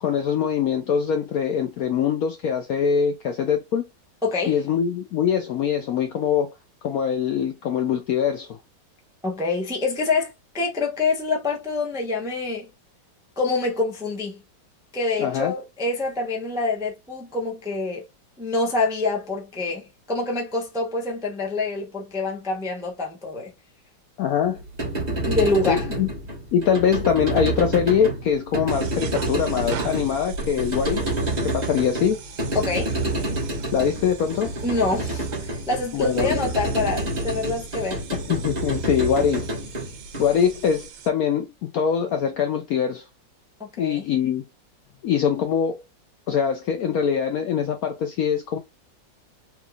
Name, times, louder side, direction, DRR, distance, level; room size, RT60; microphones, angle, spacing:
voice 1, 0.0-3.9 4.5-6.5 6.8-8.6 15.2-15.5 24.2-24.6 25.7-26.1 26.5-31.0 31.4-32.2 33.7-34.5 35.9-36.4 38.1-39.5 40.2-43.0 43.8-44.4 45.0-45.8 46.3-48.6, left 8 dB, 75° left, 0.8 m, -23 dB
voice 2, 4.2-4.6 9.2-12.7 13.4-14.4 14.9-18.0 18.4-23.5 25.3-25.9 32.5-33.0 34.6-38.0 43.6-44.1, left 3 dB, 5° right, 0.4 m, -26 dB
sound 1, 24.6-40.7, right 2 dB, 25° right, 1.3 m, -28 dB
sound 2, 28.7-41.1, right 5 dB, 85° right, 1.5 m, -41 dB
3.6 x 2.9 x 2.3 m
omnidirectional pair, 2.0 m